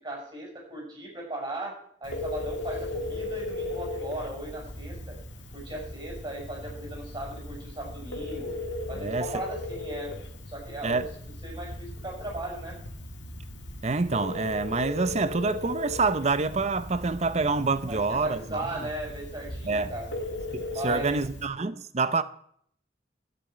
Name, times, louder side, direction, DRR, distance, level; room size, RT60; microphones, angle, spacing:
voice 1, 0.0-5.2 5.5-8.5 8.9-10.1 10.5-11.1 11.4-12.8 17.9-20.1 20.7-21.2, right 1 dB, 20° right, 6.6 m, -37 dB
Telephone, 2.0-21.4, left 2 dB, 85° left, 2.4 m, -37 dB
voice 2, 8.9-9.3 10.8-11.0 13.8-18.6 19.7-19.9 20.5-22.2, right 3 dB, 40° right, 0.7 m, -27 dB
12.5 x 6.9 x 9.1 m
head